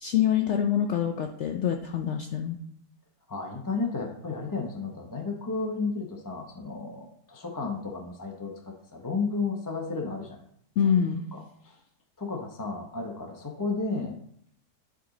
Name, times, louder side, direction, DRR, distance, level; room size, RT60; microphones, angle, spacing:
voice 1, 0.0-2.6 10.8-11.2, left 9 dB, 70° left, 4 dB, 0.6 m, -25 dB
voice 2, 3.3-10.4 10.9-11.0 11.3-11.4 11.6-11.8 12.2-14.2, left 4 dB, 20° left, 1 dB, 0.5 m, -33 dB
10.0 x 3.8 x 3.8 m, 0.70 s
omnidirectional pair, 1.7 m